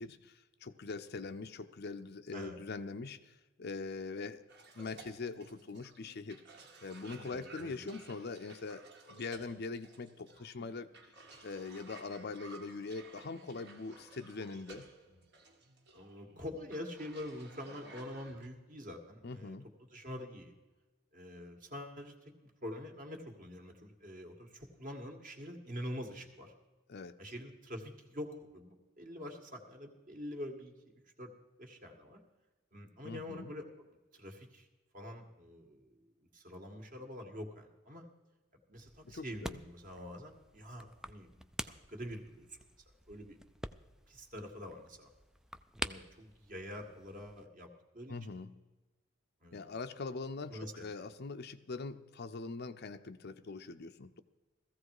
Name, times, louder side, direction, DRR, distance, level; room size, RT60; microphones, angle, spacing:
voice 1, 0.0-4.5 4.7-6.4 6.8-10.9 11.4-14.9 19.2-19.7 26.9-27.2 33.0-33.5 39.0-39.6 48.1-48.5 49.5-54.2, left 3 dB, 55° left, 9 dB, 0.6 m, -42 dB
Cough, 4.5-18.5, right 3 dB, 60° right, 2.0 m, -56 dB
voice 2, 7.1-7.8 15.9-19.6 19.9-20.5 21.1-22.3 22.6-26.5 27.2-31.3 31.6-32.2 32.7-33.9 34.1-34.7 34.9-38.1 38.7-42.6 43.1-43.4 44.1-45.1 45.8-48.2 49.4-49.8 50.5-51.0, left 1 dB, 40° right, 3 dB, 1.9 m, -46 dB
sound 1, 38.7-47.5, equal, 5° right, 0.4 m, -47 dB
16.0 x 15.0 x 4.8 m, 1.2 s
head